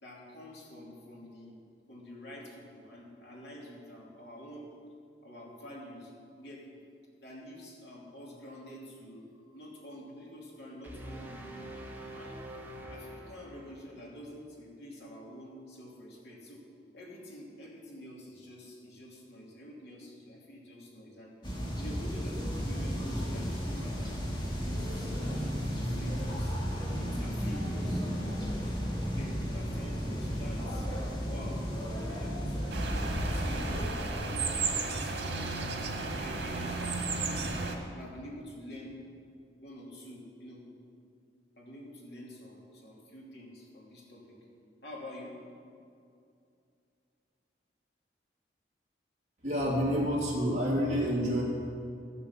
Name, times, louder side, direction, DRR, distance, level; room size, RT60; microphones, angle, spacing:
voice 1, 0.0-1.6 1.9-4.7 5.2-6.6 7.2-11.7 12.1-12.4 12.9-16.6 16.9-21.3 21.8-24.3 24.6-26.6 27.0-28.1 29.1-30.9 31.3-31.9 32.2-32.9 33.2-37.6 37.9-39.0 39.6-40.7 41.6-44.4 44.8-45.3, equal, 75° left, -3 dB, 2.8 m, -47 dB
sound 1, 10.8-14.0, right 1 dB, 10° right, 1.0 m, -45 dB
sound 2, 21.4-33.8, equal, 25° left, 2.0 m, -34 dB
sound 3, 32.7-37.7, right 3 dB, 85° right, 1.6 m, -33 dB
voice 2, 49.4-51.4, equal, 40° right, -5 dB, 3.0 m, -28 dB
13.0 x 7.0 x 7.2 m, 2.5 s
head